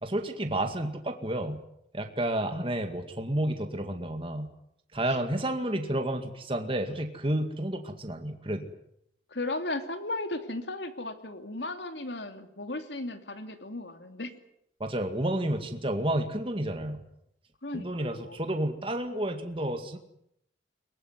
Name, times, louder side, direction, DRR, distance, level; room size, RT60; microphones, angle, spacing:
voice 1, 0.0-1.6 1.9-4.5 4.9-8.7 14.8-17.0 17.7-20.0, right 1 dB, 30° right, 6 dB, 2.1 m, -30 dB
voice 2, 9.3-14.3 17.6-18.4, left 2 dB, 70° left, 7 dB, 2.9 m, -36 dB
23.0 x 21.0 x 9.6 m, 0.76 s
head